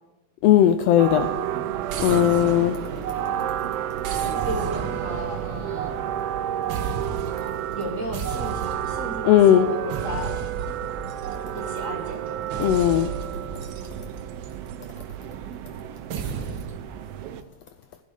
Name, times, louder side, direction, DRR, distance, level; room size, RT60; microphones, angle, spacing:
voice 1, 0.4-1.3 2.0-2.8 9.2-9.7 12.6-13.1, left 11 dB, 85° left, 9 dB, 1.4 m, -17 dB
sound 1, 1.0-17.4, right 11 dB, 85° right, 1.3 m, -31 dB
sound 2, 1.9-3.5 4.0-6.4 6.7-7.5 8.1-9.2 9.9-11.8 12.5-14.9 16.1-16.9, right 5 dB, 65° right, 1.2 m, -34 dB
voice 2, 4.4-6.0 7.7-10.4 11.5-12.5, equal, 40° right, -1 dB, 1.1 m, -34 dB
15.0 x 7.9 x 5.0 m, 1.2 s
omnidirectional pair, 3.4 m